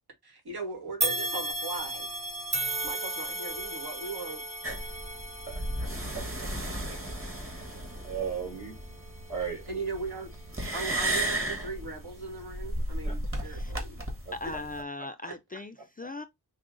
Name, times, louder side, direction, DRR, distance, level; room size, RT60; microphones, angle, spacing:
voice 1, 0.2-2.1 2.8-4.4 9.7-10.3 10.7-14.0 15.2-15.3, right 3 dB, 75° right, 1.5 m, -38 dB
sound 1, 1.0-10.3 10.8-11.0 12.0-12.1, right 1 dB, 15° right, 0.8 m, -36 dB
sound 2, 4.6-14.8, right 1 dB, 35° right, 1.4 m, -35 dB
voice 2, 5.5-5.9 6.1-6.2 6.9-7.0 7.2-7.7 8.0-8.8 9.3-9.8 13.0-13.2 14.3-14.4, right 7 dB, 55° right, 2.2 m, -37 dB
voice 3, 14.3-16.2, left 2 dB, 25° left, 0.4 m, -39 dB
4.7 x 2.0 x 3.7 m
wide cardioid pair, 65°, 38 cm